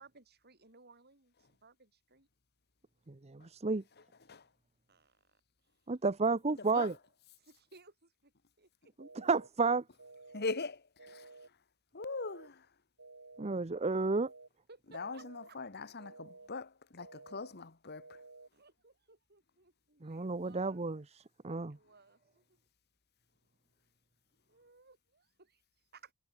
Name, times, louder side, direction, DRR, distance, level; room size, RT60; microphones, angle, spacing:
voice 1, 0.0-2.3 4.9-5.7 7.4-8.9 14.7-15.6 18.5-20.8 21.7-22.6 24.5-26.1, right 4 dB, 50° right, 7.2 m, -61 dB
voice 2, 3.1-3.8 5.9-6.9 9.0-9.8 13.4-14.3 20.0-21.8, right 4 dB, 30° right, 0.8 m, -32 dB
sound 1, 9.0-9.5 10.0-10.5 11.0-11.5 12.0-12.5 13.0-13.5 14.0-14.5 15.0-15.5 16.0-16.5 17.0-17.5 18.0-18.5, right 3 dB, 75° right, 4.8 m, -54 dB
voice 3, 10.3-11.3 11.9-12.7 14.9-18.2, left 3 dB, 50° left, 1.7 m, -41 dB
head